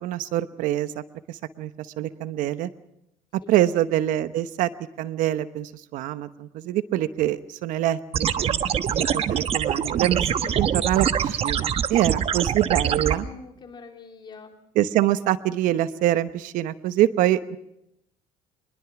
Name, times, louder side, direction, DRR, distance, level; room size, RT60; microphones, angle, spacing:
voice 1, 0.0-2.7 3.5-4.7 5.0-8.6 8.9-10.3 10.6-13.3 14.7-17.6, right 13 dB, 75° right, 13 dB, 1.0 m, -25 dB
sound 1, 8.1-13.1, right 8 dB, 45° right, 1.1 m, -24 dB
voice 2, 12.9-14.6, left 5 dB, 35° left, 3 dB, 3.6 m, -43 dB
25.0 x 21.5 x 6.0 m, 0.80 s
cardioid pair, 125°, 14 cm